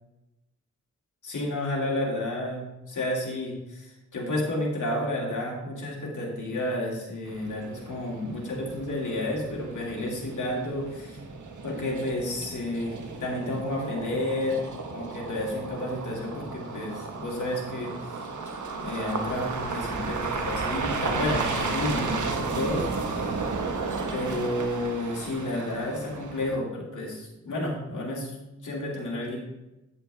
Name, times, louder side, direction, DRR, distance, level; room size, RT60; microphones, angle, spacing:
voice 1, 1.2-11.2 11.6-14.6 14.9-17.9 18.8-23.4 24.1-28.3 28.6-29.4, left 1 dB, 90° left, -2 dB, 2.4 m, -31 dB
sound 1, 7.3-26.6, right 4 dB, 80° right, 1.1 m, -34 dB
9.4 x 8.2 x 3.3 m, 0.98 s
wide cardioid pair, 65°, 29 cm